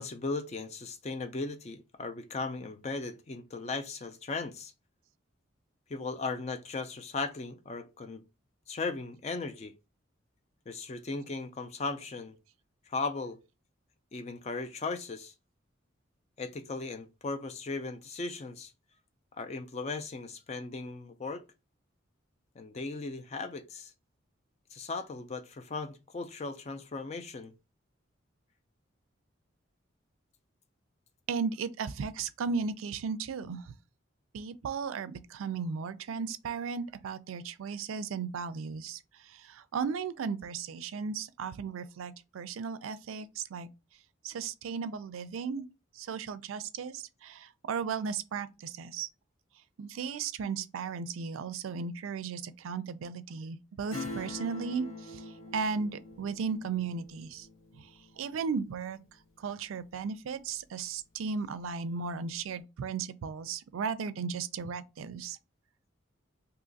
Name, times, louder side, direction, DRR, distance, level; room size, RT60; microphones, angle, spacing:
voice 1, 0.0-4.7 5.9-8.2 8.7-9.7 10.7-12.4 12.9-13.4 14.1-15.3 16.4-18.7 19.3-21.5 22.6-23.9 24.7-27.5, left 3 dB, 30° left, 0.3 m, -37 dB
voice 2, 31.3-33.7 34.3-43.7 44.2-45.6 45.9-49.1 49.8-57.5 57.8-57.9 58.2-59.0 59.4-65.4, right 5 dB, 85° right, 0.4 m, -35 dB
Acoustic guitar / Strum, 53.9-60.1 60.5-60.6, left 2 dB, 90° left, 1.0 m, -45 dB
2.8 x 2.4 x 3.9 m
head